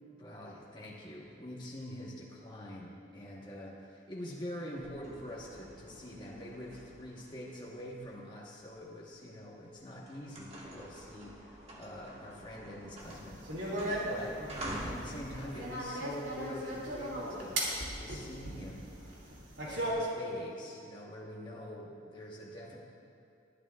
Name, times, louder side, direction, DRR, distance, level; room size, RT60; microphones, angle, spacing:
voice 1, 0.2-14.4 14.8-17.6 17.9-18.9 19.6-22.8, equal, 25° left, -5 dB, 1.3 m, -45 dB
sound 1, 4.8-9.0 9.5-9.7 10.0-15.8, equal, 35° right, 1.7 m, -46 dB
sound 2, 13.0-19.9, right 1 dB, 75° right, 2.5 m, -38 dB
19.5 x 12.0 x 2.4 m, 2.6 s
head